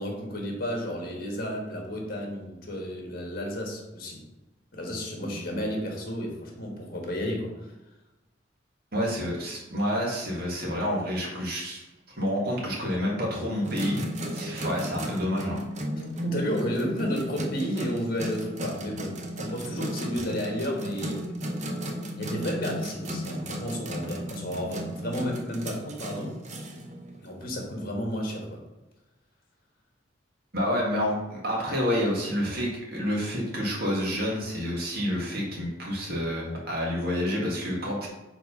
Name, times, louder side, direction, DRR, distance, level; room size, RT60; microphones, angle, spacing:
voice 1, 0.0-4.2 4.7-7.7 16.2-21.2 22.2-26.4 27.2-28.6, equal, 50° left, 0 dB, 1.5 m, -32 dB
voice 2, 8.9-11.8 12.2-14.0 14.3-15.6 30.5-38.1, equal, 55° right, -3 dB, 1.9 m, -28 dB
sound 1, 13.6-27.4, right 1 dB, 40° right, 0.8 m, -35 dB
4.6 x 4.0 x 5.5 m, 1.0 s
head